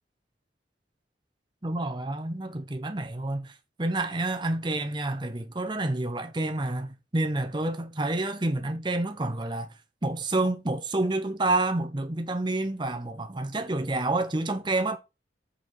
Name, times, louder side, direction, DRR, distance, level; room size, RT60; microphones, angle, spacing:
voice 1, 1.6-3.5 3.8-9.7 10.0-15.0, right 2 dB, 25° right, 0.8 m, -28 dB
5.7 x 5.6 x 4.3 m
head